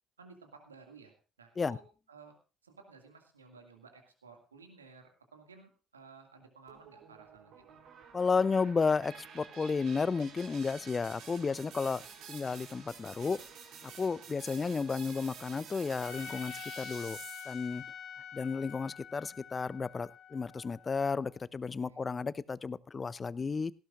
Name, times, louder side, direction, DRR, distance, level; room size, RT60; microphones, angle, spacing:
voice 1, 0.2-1.8 2.1-2.3 2.6-7.8 14.1-14.2 21.9-22.0, right 4 dB, 85° right, 4 dB, 2.2 m, -55 dB
sound 1, 6.7-17.8, right 6 dB, 55° right, 3.7 m, -50 dB
voice 2, 8.1-12.0 12.3-13.4 13.8-17.2 17.5-17.8 18.3-23.7, left 5 dB, 30° left, 20 dB, 0.6 m, -32 dB
Trumpet, 16.0-21.2, left 9 dB, 55° left, 2.0 m, -47 dB
18.0 x 16.0 x 2.5 m, 0.34 s
figure-of-eight pair, 55°, 0 cm